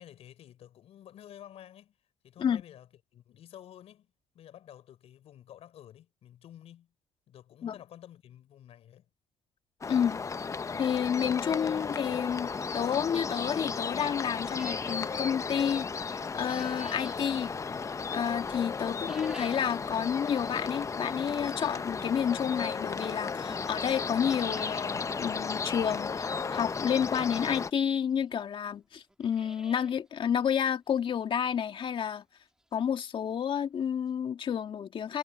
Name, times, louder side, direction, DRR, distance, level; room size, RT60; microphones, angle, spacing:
voice 1, 0.0-6.9 7.3-9.1, left 11 dB, 65° left, 4.5 m, -51 dB
sound 1, 9.8-27.7, left 5 dB, 25° left, 0.8 m, -34 dB
voice 2, 9.9-10.2 10.8-17.5 18.1-32.2 32.7-35.2, left 8 dB, 50° left, 2.0 m, -30 dB
sound 2, 14.5-15.1 16.1-17.2 18.9-19.7 20.1-20.2 21.1-21.2 22.8-22.9 23.4-23.5 23.7-23.8 24.1-24.9 25.3-25.4 25.6-25.7 27.2-27.3 28.1-28.2 28.4-28.5 29.0-30.0 30.4-30.5 31.0-31.1 31.5-31.6 33.3-33.4 33.6-33.7 34.1-34.2, right 1 dB, 5° right, 1.6 m, -50 dB
cardioid pair, 85°, 11 cm